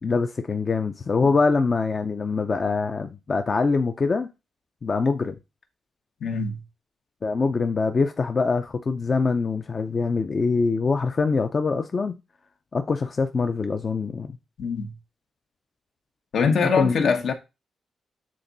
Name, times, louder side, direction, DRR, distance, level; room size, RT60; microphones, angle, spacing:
voice 1, 0.0-4.3 4.8-5.3 7.2-12.2 12.7-14.3 16.7-16.9, left 4 dB, 35° left, 0.6 m, -24 dB
voice 2, 6.2-6.6 14.6-14.9 16.3-17.3, left 5 dB, 70° left, 1.2 m, -23 dB
7.7 x 3.7 x 4.0 m
wide cardioid pair, 135°, 0 cm